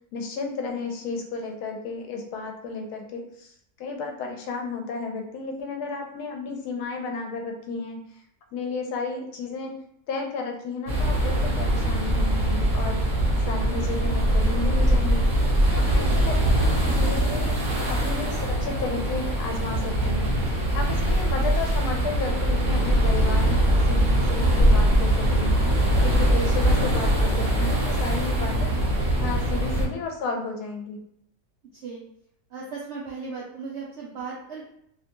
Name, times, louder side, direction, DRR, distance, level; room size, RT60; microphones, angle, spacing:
voice 1, 0.1-8.2 8.5-9.7 10.1-13.0 13.5-15.3 15.7-17.6 17.9-20.3 20.7-28.7 29.2-31.0, left 4 dB, 80° left, 3 dB, 1.1 m, -33 dB
sound 1, 10.9-29.9, right 1 dB, 45° right, 0.8 m, -22 dB
voice 2, 32.5-34.7, right 4 dB, 80° right, -3 dB, 0.6 m, -36 dB
2.8 x 2.1 x 2.9 m, 0.72 s
omnidirectional pair, 1.7 m